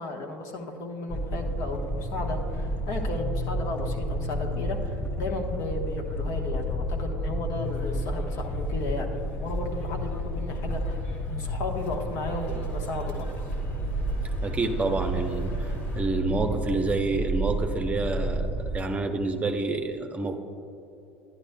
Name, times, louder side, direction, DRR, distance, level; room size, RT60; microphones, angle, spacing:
voice 1, 0.0-13.3, left 2 dB, 50° left, 2 dB, 1.2 m, -34 dB
Car rolling on cobblestone, 1.1-18.8, equal, 35° left, 0.9 m, -31 dB
sound 1, 7.6-16.0, left 1 dB, 65° left, 1.7 m, -50 dB
voice 2, 14.4-15.7 15.9-20.4, right 3 dB, 20° right, 5 dB, 0.8 m, -28 dB
11.0 x 11.0 x 2.2 m, 2.9 s
figure-of-eight pair, 70°, 7 cm